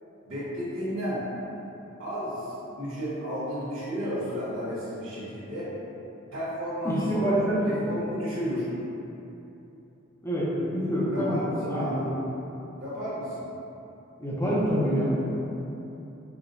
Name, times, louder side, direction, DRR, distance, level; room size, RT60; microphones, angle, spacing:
voice 1, 0.2-1.2 2.0-5.7 6.3-7.4 7.6-8.7 11.1-12.0 12.8-13.5, equal, 75° right, -12 dB, 1.3 m, -33 dB
voice 2, 6.8-7.7 10.2-11.4 11.7-12.1 14.2-15.1, equal, 10° left, -8 dB, 0.6 m, -26 dB
4.8 x 2.2 x 2.6 m, 2.9 s
head